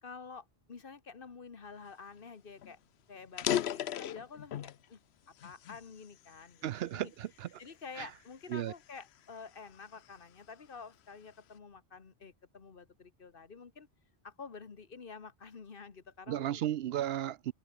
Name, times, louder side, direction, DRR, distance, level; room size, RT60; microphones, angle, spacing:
voice 1, 0.0-2.8 3.1-5.0 5.4-6.6 6.9-7.1 7.6-13.9 14.2-16.6, left 5 dB, 55° left, 1.5 m, -49 dB
sound 1, 2.2-2.3 2.6-2.7 3.2-4.8 5.4-6.7 7.2-7.5 8.1-10.2, left 11 dB, 75° left, 0.9 m, -36 dB
voice 2, 6.6-7.5 8.0-8.1 8.5-8.7 16.3-17.5, right 12 dB, 70° right, 0.8 m, -34 dB
omnidirectional pair, 1.1 m